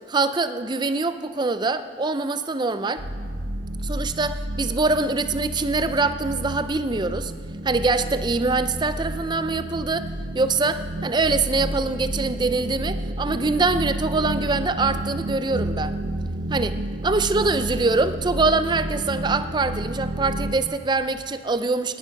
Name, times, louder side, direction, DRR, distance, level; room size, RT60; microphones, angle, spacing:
voice 1, 0.1-3.0 3.8-7.3 7.6-10.1 10.3-16.0 16.5-16.8 17.0-22.0, right 3 dB, 25° right, 11 dB, 0.5 m, -24 dB
sound 1, 3.0-20.6, right 1 dB, 60° right, 0.9 m, -31 dB
18.5 x 10.0 x 5.3 m, 2.4 s
head